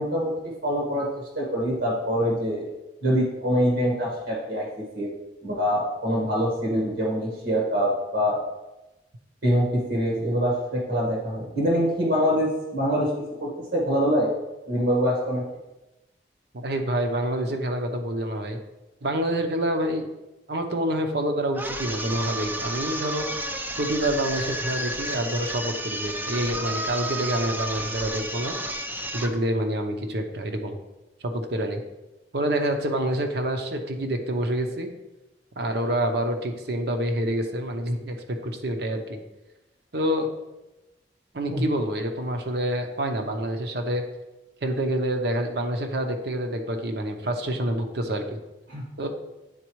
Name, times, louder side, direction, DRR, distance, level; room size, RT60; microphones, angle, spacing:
voice 1, 0.0-2.7 3.0-5.1 5.4-8.4 9.4-13.1 13.4-14.3 14.7-15.4 22.0-22.1 41.5-41.7 48.7-48.8, equal, 85° right, -3 dB, 1.5 m, -24 dB
voice 2, 16.5-18.6 19.0-20.1 20.5-23.3 23.8-28.6 29.1-30.8 31.2-31.8 32.3-34.9 35.6-39.2 39.9-40.3 41.3-44.0 44.6-48.4 49.0-49.1, right 1 dB, 65° right, 5 dB, 0.8 m, -27 dB
sound 1, 21.5-29.4, right 1 dB, 10° right, 0.4 m, -31 dB
9.5 x 4.1 x 3.1 m, 1.0 s
head